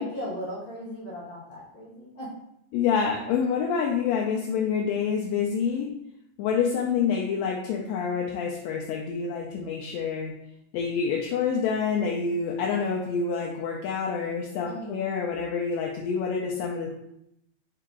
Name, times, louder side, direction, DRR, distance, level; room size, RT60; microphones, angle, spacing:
voice 1, 0.0-2.3 14.6-15.1, equal, 60° left, -6 dB, 1.5 m, -37 dB
voice 2, 2.7-5.9 6.4-10.3 10.7-16.9, left 6 dB, 80° left, -2 dB, 1.7 m, -27 dB
4.7 x 2.9 x 3.5 m, 0.78 s
omnidirectional pair, 3.4 m